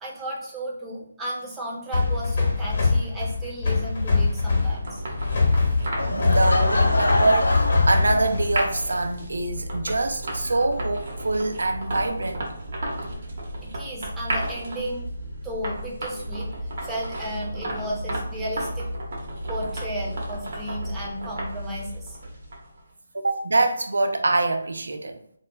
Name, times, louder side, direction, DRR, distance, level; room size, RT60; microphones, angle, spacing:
voice 1, 0.0-5.0 13.6-15.1 15.4-16.5 16.8-18.9 19.5-22.2, right 1 dB, 5° right, 0.5 m, -34 dB
sound 1, 1.9-8.7, left 4 dB, 50° left, 0.9 m, -23 dB
sound 2, 3.8-22.8, right 1 dB, 55° right, 0.7 m, -33 dB
Laughter / Crowd, 6.0-8.8, left 1 dB, 85° left, 0.5 m, -26 dB
voice 2, 6.1-12.5 23.1-25.2, right 2 dB, 80° right, 0.4 m, -24 dB
2.2 x 2.2 x 3.0 m
figure-of-eight pair, 160°, 0 cm